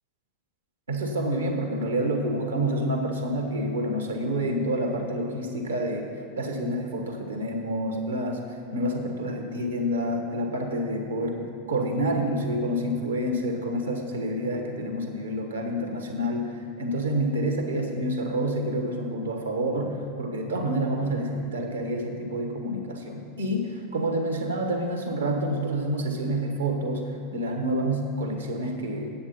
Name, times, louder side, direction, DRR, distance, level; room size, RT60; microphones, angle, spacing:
voice 1, 0.9-6.1 6.4-8.4 8.7-29.1, right 1 dB, 75° right, 3 dB, 1.2 m, -28 dB
8.6 x 8.1 x 5.7 m, 2.6 s
figure-of-eight pair, 85°, 0 cm